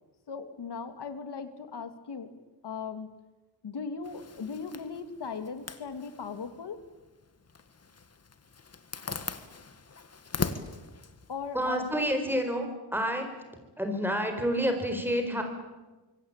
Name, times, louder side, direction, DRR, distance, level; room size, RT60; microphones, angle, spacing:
voice 1, 0.3-2.3 2.6-3.1 3.6-6.8 11.3-12.0, left 5 dB, 75° left, 9 dB, 2.6 m, -38 dB
Zipper (clothing), 4.0-12.2, left 4 dB, 35° left, 1.6 m, -41 dB
voice 2, 11.5-13.3 13.8-15.4, equal, 5° right, 4 dB, 4.6 m, -29 dB
25.5 x 23.0 x 8.9 m, 1.2 s
wide cardioid pair, 150°, 41 cm